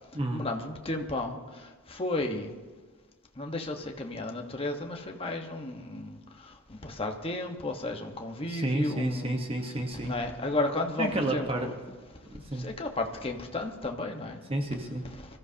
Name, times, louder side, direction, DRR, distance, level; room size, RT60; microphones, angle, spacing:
voice 1, 0.3-2.5 3.3-9.4 10.0-11.7 12.2-14.4 15.0-15.4, left 2 dB, 25° left, 3 dB, 1.3 m, -34 dB
voice 2, 8.5-10.1 11.0-11.7 12.3-12.7 14.5-15.0, right 1 dB, 25° right, 3 dB, 1.2 m, -30 dB
24.0 x 14.0 x 2.9 m, 1.4 s
head